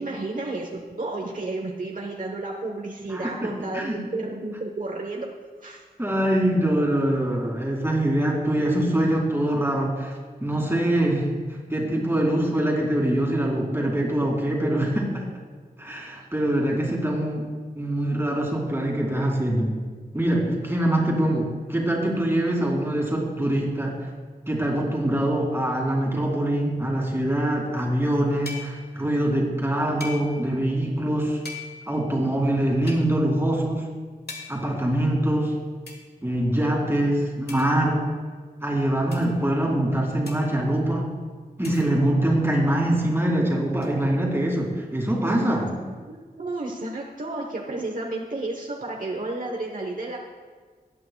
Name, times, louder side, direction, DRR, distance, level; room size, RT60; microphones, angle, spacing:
voice 1, 0.0-5.3 5.6-5.8 45.2-45.5 45.8-50.2, right 2 dB, 55° right, 0 dB, 1.0 m, -32 dB
voice 2, 3.1-4.0 6.0-10.1 10.4-11.3 11.7-15.3 15.8-17.5 17.7-19.7 20.1-24.1 24.5-31.4 31.9-33.9 34.5-35.6 36.2-38.1 38.6-41.1 41.6-45.7, right 1 dB, 15° right, -1 dB, 2.3 m, -24 dB
sound 1, 28.5-28.9 30.0-30.6 31.4-32.0 32.9-33.1 34.3-34.8 35.9-36.0 37.5-38.1 39.1-39.4 40.3-40.7 41.6-42.1 43.8-43.9, left 4 dB, 85° left, 1.5 m, -40 dB
19.0 x 8.5 x 2.3 m, 1.5 s
wide cardioid pair, 90°, 16 cm